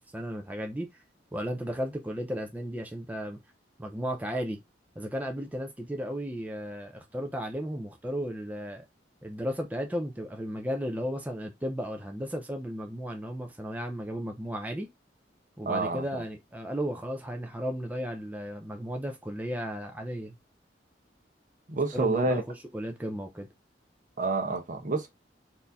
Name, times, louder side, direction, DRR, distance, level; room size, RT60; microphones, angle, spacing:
voice 1, 0.1-0.9 1.3-3.4 3.8-4.6 5.0-8.8 9.2-14.9 15.6-20.3 21.9-23.5, equal, 10° right, 0.5 m, -34 dB
voice 2, 15.6-16.2 21.7-22.4 24.2-25.1, right 3 dB, 45° right, 0.9 m, -28 dB
4.2 x 2.7 x 3.4 m
head